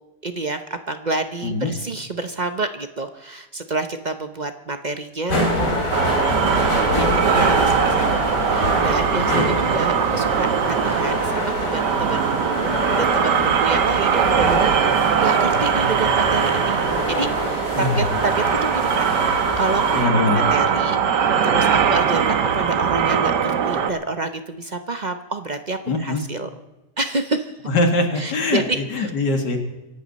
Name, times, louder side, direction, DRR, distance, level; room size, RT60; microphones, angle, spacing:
voice 1, 0.2-5.5 6.5-12.2 12.4-16.8 17.1-20.1 20.3-26.5 27.0-27.6 28.2-28.8, right 3 dB, 45° right, 9 dB, 0.6 m, -28 dB
voice 2, 1.4-1.7 9.1-9.5 17.7-18.0 20.0-20.4 25.9-26.2 27.7-29.6, left 2 dB, 85° left, 5 dB, 2.6 m, -22 dB
sound 1, 5.3-20.1, equal, 50° left, 3.8 m, -25 dB
sound 2, 5.9-23.9, right 7 dB, 85° right, 1.7 m, -21 dB
25.5 x 11.5 x 4.1 m, 1.1 s
omnidirectional pair, 1.8 m